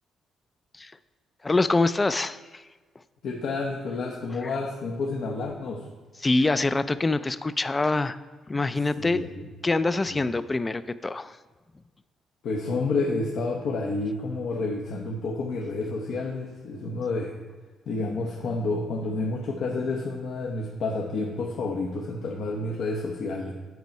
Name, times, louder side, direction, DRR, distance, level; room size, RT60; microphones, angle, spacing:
voice 1, 1.4-2.6 6.2-8.2 8.5-9.2 9.6-11.4, left 2 dB, 20° left, 14 dB, 0.3 m, -25 dB
voice 2, 3.2-5.8 9.0-9.4 10.1-10.2 12.4-17.3 17.9-23.5, left 3 dB, 70° left, -1 dB, 0.8 m, -30 dB
8.2 x 4.5 x 5.2 m, 1.3 s
cardioid pair, 90°, 0 cm